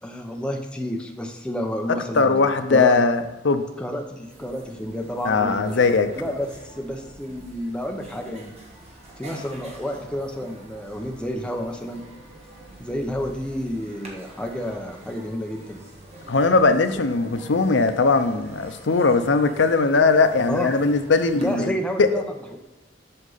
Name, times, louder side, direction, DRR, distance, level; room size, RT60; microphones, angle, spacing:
voice 1, 0.0-2.4 2.7-3.0 3.8-5.9 6.1-8.5 9.2-12.0 12.8-15.8 20.5-20.7 21.3-22.2 22.5-22.6, equal, 5° left, 2 dB, 0.8 m, -30 dB
voice 2, 2.1-3.6 5.2-6.1 16.3-22.1, left 4 dB, 75° left, 9 dB, 0.6 m, -19 dB
sound 1, 4.1-21.6, right 1 dB, 35° right, 1.5 m, -46 dB
7.8 x 6.4 x 4.0 m, 1.1 s
head